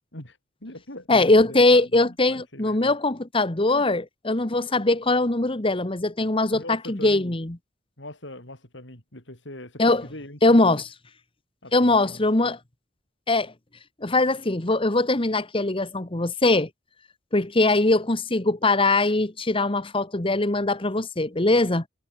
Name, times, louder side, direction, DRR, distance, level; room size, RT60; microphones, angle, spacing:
voice 1, 0.1-2.9 3.7-3.9 6.5-7.3 8.0-10.7 11.6-12.5, left 1 dB, 70° left, 7.8 m, -42 dB
voice 2, 1.1-7.6 9.8-10.0 10.4-10.9 11.7-12.6 13.3-13.5 14.0-16.7 17.3-21.8, left 2 dB, 30° left, 1.4 m, -21 dB
head